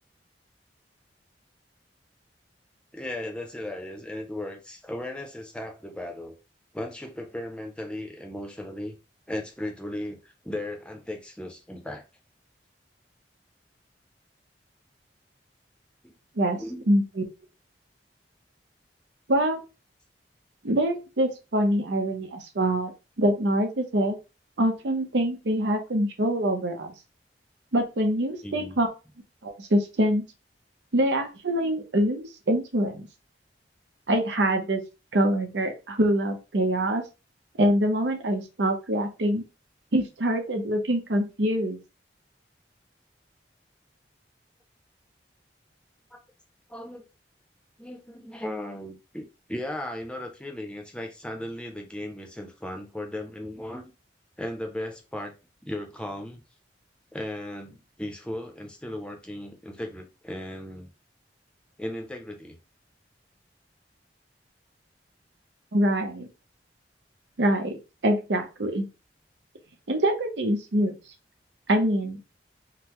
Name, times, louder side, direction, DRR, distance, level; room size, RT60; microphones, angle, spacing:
voice 1, 2.9-6.3 6.7-8.9 9.3-12.0 16.0-16.1 16.5-16.9 28.4-28.8 46.1-46.2 46.7-47.0 47.8-53.9 54.4-55.3 55.6-56.4 57.1-60.9 61.8-62.6, left 1 dB, 5° left, 3 dB, 0.6 m, -36 dB
voice 2, 19.3-19.6 20.6-22.9 23.2-24.2 24.6-26.9 27.7-28.9 29.4-30.2 30.9-33.1 34.1-34.8 35.1-37.0 37.6-39.4 39.9-41.8 65.7-66.3 67.4-67.7 68.0-68.9 69.9-71.0 71.7-72.2, right 1 dB, 90° right, 5 dB, 0.7 m, -24 dB
3.7 x 2.1 x 3.0 m, 0.29 s
head